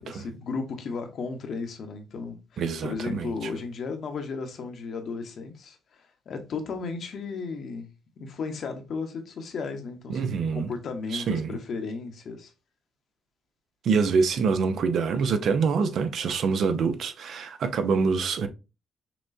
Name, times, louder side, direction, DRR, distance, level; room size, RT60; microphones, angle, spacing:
voice 1, 0.0-7.9 8.2-12.5, left 4 dB, 60° left, 1.0 m, -35 dB
voice 2, 2.6-3.5 10.1-10.7 11.1-11.6 13.8-18.5, right 5 dB, 65° right, 0.6 m, -25 dB
5.9 x 2.3 x 2.6 m
cardioid pair, 90°, 0 cm